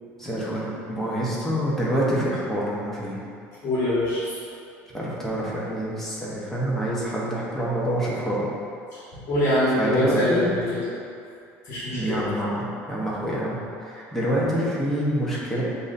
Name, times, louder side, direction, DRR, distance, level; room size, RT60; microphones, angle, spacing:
voice 1, 0.2-3.2 4.9-8.5 9.8-10.5 11.9-15.6, right 1 dB, 5° left, -6 dB, 0.9 m, -26 dB
voice 2, 3.6-4.4 9.1-10.8 11.6-12.3, left 1 dB, 40° left, -10 dB, 1.5 m, -24 dB
7.2 x 2.7 x 2.6 m, 2.5 s
cardioid pair, 135°, 6 cm